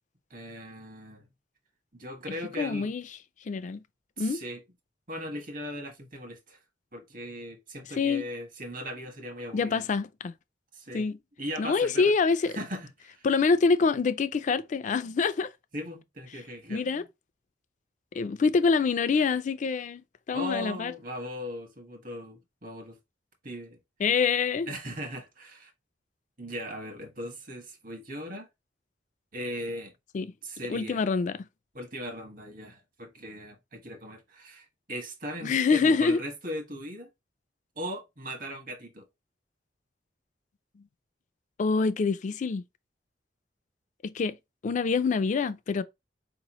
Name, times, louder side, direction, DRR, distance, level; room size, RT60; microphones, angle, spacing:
voice 1, 0.3-1.3 2.0-2.9 4.2-4.6 5.1-6.6 6.9-9.9 10.7-11.1 11.4-12.1 12.5-13.3 15.7-17.1 20.3-23.0 23.4-23.8 24.7-25.7 26.4-28.5 29.3-29.9 30.4-31.0 31.7-37.1 37.8-39.1, equal, 50° right, 1.2 m, -38 dB
voice 2, 2.6-3.0 3.5-3.8 4.2-4.4 8.0-8.2 9.5-10.3 10.9-11.2 11.6-12.5 13.2-15.5 16.7-17.0 18.1-20.0 20.3-20.9 24.0-24.7 30.1-30.3 30.7-31.5 35.4-36.2 41.6-42.6 44.0-44.4 44.6-45.8, left 4 dB, 45° left, 0.3 m, -25 dB
4.5 x 2.9 x 3.0 m
head